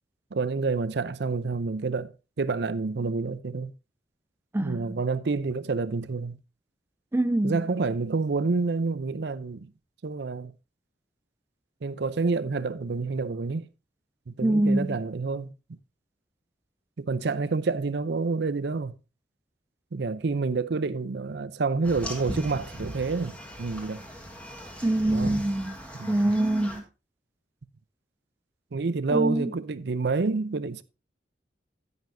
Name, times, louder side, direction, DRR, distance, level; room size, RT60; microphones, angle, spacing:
voice 1, 0.3-2.1 2.4-3.7 4.6-6.4 7.4-9.7 10.0-10.5 11.8-13.7 14.3-15.5 17.0-18.9 19.9-24.0 25.1-25.4 26.0-26.3 28.7-30.8, right 4 dB, 65° right, 0.6 m, -28 dB
voice 2, 4.5-5.0 7.1-7.6 14.4-15.0 24.8-25.8 26.1-26.8 29.1-29.5, right 1 dB, 15° right, 0.4 m, -25 dB
sound 1, 21.8-26.8, equal, 5° left, 1.6 m, -38 dB
10.5 x 9.6 x 2.6 m
head